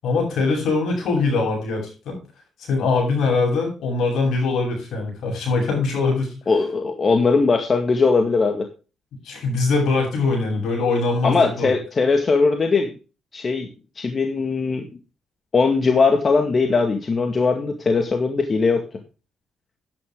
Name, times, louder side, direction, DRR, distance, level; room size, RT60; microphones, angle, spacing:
voice 1, 0.0-2.2 2.6-6.3 9.2-11.7, left 3 dB, 70° left, 1 dB, 8.0 m, -22 dB
voice 2, 6.5-8.7 11.2-12.9 13.3-13.7 14.0-14.9 15.5-18.8, left 4 dB, 40° left, 4 dB, 2.0 m, -19 dB
11.5 x 10.0 x 3.8 m, 0.33 s
cardioid pair, 90°, 0 cm